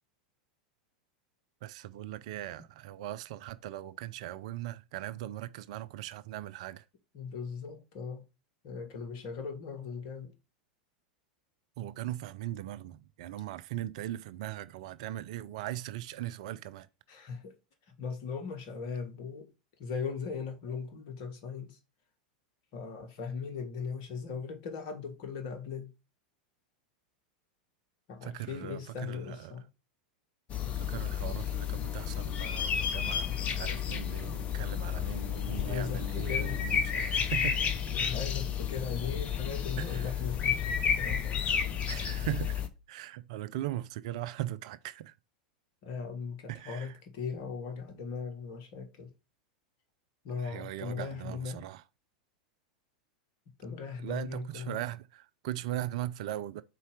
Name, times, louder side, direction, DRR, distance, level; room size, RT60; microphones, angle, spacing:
voice 1, 1.6-6.8 11.8-16.9 28.2-29.6 30.7-37.7 39.8-40.2 41.9-42.6 42.9-45.1 46.5-47.0 50.4-51.8 54.0-56.6, right 13 dB, 55° right, 0.4 m, -39 dB
voice 2, 7.1-8.2 8.6-10.3 17.1-17.5 18.0-19.5 19.8-21.8 22.7-25.9 28.1-29.7 33.7-33.9 35.5-36.7 37.4-37.5 37.9-41.6 45.8-49.1 50.2-51.6 53.6-54.8, left 5 dB, 50° left, 1.4 m, -39 dB
sound 1, 30.5-42.7, left 8 dB, 30° left, 0.8 m, -32 dB
4.6 x 4.2 x 4.9 m
figure-of-eight pair, 90°, 4 cm